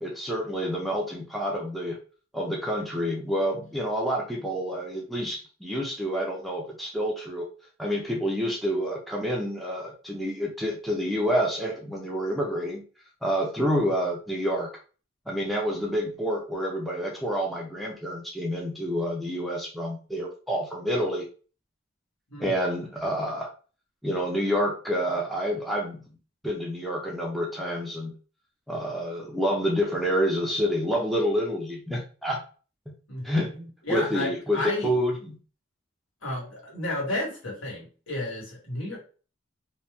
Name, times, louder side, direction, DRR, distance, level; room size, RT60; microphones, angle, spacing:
voice 1, 0.0-2.0 2.3-7.5 7.8-12.8 13.2-14.7 15.3-21.3 22.4-23.5 24.0-26.0 26.4-28.2 28.7-32.4 32.9-33.0 33.2-33.5 33.9-35.4, equal, ahead, -2 dB, 0.5 m, -28 dB
voice 2, 33.5-34.9 36.2-39.0, left 1 dB, 70° left, -2 dB, 1.4 m, -32 dB
2.7 x 2.2 x 3.4 m, 0.37 s
head